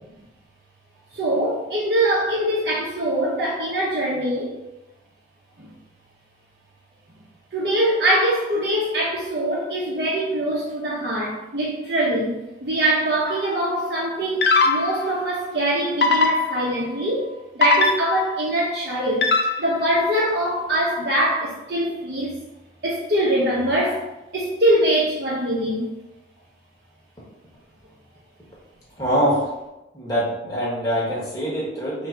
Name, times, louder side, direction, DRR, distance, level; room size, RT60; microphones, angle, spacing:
voice 1, 1.1-4.5 5.6-5.7 7.5-17.3 17.5-19.3 19.6-22.3 22.8-24.1 24.3-25.9, right 1 dB, 60° right, -6 dB, 0.8 m, -23 dB
sound 1, 13.3-13.6 14.4-15.1 16.0-16.9 17.6-18.4 19.2-19.9, left 3 dB, 60° left, 0.4 m, -20 dB
voice 2, 29.0-29.5 29.9-32.1, equal, 20° left, -7 dB, 1.2 m, -24 dB
3.1 x 2.7 x 4.5 m, 0.97 s
head